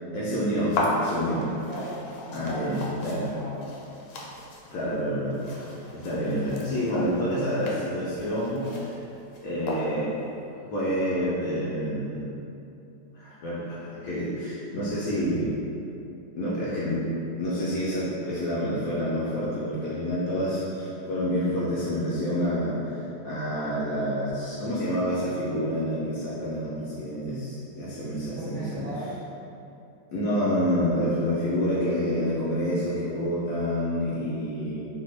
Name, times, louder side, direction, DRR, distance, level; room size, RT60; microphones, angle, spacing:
voice 1, 0.1-1.4 2.3-3.3 4.7-9.0 9.4-10.1 10.6-12.2 13.1-15.6 16.4-17.0 17.4-22.8 23.2-28.9 30.1-34.9, equal, 70° left, -8 dB, 0.8 m, -28 dB
sound 1, 0.7-10.2, left 2 dB, 85° left, 1.2 m, -35 dB
voice 2, 1.3-3.6 28.4-29.1, right 1 dB, 85° right, -9 dB, 0.6 m, -38 dB
3.4 x 2.1 x 3.1 m, 2.7 s
omnidirectional pair, 1.9 m